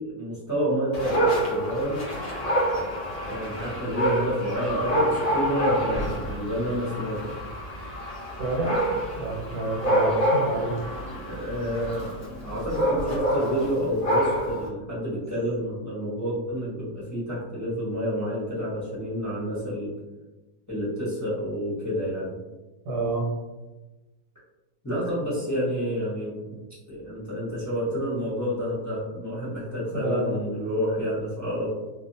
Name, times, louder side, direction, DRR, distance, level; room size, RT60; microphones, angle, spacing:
voice 1, 0.0-2.0 3.3-7.4 9.8-10.1 10.5-10.7 11.2-12.1 12.4-19.9 20.7-22.3 24.8-26.5 26.9-31.7, equal, 15° left, -10 dB, 0.7 m, -29 dB
Dog, 0.9-14.7, right 1 dB, 50° left, 0.4 m, -27 dB
voice 2, 8.4-8.8 9.2-10.7 22.8-23.3 29.9-30.4, right 2 dB, 85° right, -2 dB, 1.4 m, -29 dB
2.6 x 2.6 x 2.7 m, 1.1 s
omnidirectional pair, 1.7 m